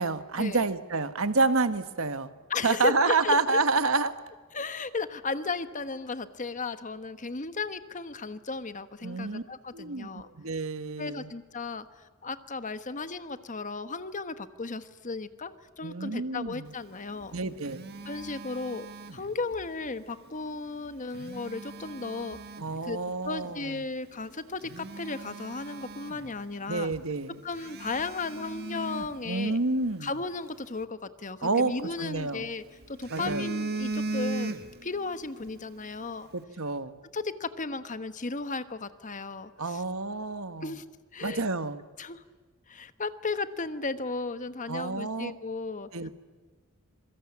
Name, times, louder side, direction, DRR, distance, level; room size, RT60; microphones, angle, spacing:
voice 1, 0.0-2.3 2.6-4.1 9.0-9.4 9.7-11.3 15.8-16.7 17.3-17.8 22.6-23.8 26.7-27.4 29.2-30.1 31.4-31.7 32.0-32.5 33.1-33.5 36.3-37.0 39.6-40.7 41.2-41.8 44.7-45.3 45.9-46.1, right 3 dB, 70° right, 11 dB, 1.5 m, -29 dB
voice 2, 2.5-3.6 4.5-10.3 11.0-11.9 12.2-17.3 18.0-18.9 19.1-22.4 22.8-23.0 23.2-26.9 27.4-29.6 30.0-36.3 37.1-39.8 40.6-40.8 41.1-41.4 42.0-42.2 42.7-45.9, left 3 dB, 35° left, 11 dB, 1.2 m, -35 dB
Telephone, 17.1-19.7 20.9-22.8 23.4-23.6 24.1-24.2 24.6-26.7 26.9-27.0 27.5-29.9 31.5-32.4 32.8-35.0 35.3-35.5, right 2 dB, 50° right, 1.6 m, -37 dB
26.5 x 23.0 x 8.7 m, 1.4 s
head